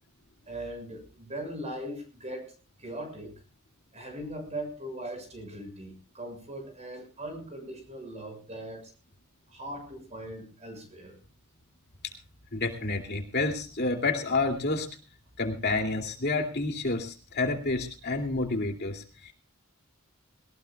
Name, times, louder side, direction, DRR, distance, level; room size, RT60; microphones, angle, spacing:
voice 1, 0.5-2.5 2.8-3.4 3.9-8.9 9.5-11.2, right 1 dB, 30° right, 5 dB, 6.7 m, -39 dB
voice 2, 12.5-14.9 15.4-19.3, left 3 dB, 50° left, 3 dB, 2.7 m, -29 dB
21.5 x 19.5 x 2.3 m, 0.35 s
head